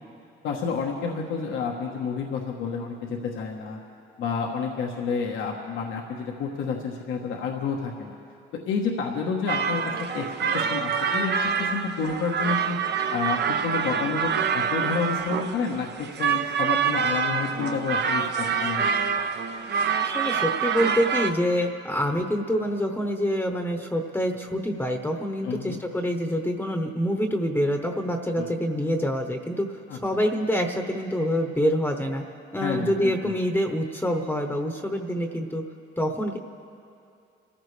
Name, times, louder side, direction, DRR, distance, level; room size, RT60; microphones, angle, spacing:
voice 1, 0.4-3.8 4.2-8.2 8.5-10.3 10.5-12.8 13.1-19.1 25.4-25.8 28.4-28.5 29.9-30.0 32.6-33.3, left 5 dB, 90° left, 0 dB, 1.2 m, -30 dB
sound 1, 9.5-21.3, right 6 dB, 60° right, 0.8 m, -26 dB
voice 2, 20.0-32.2 32.5-35.6 36.0-36.4, equal, 10° left, 3 dB, 0.9 m, -26 dB
28.0 x 14.5 x 3.3 m, 2.5 s
cardioid pair, 90°, 20 cm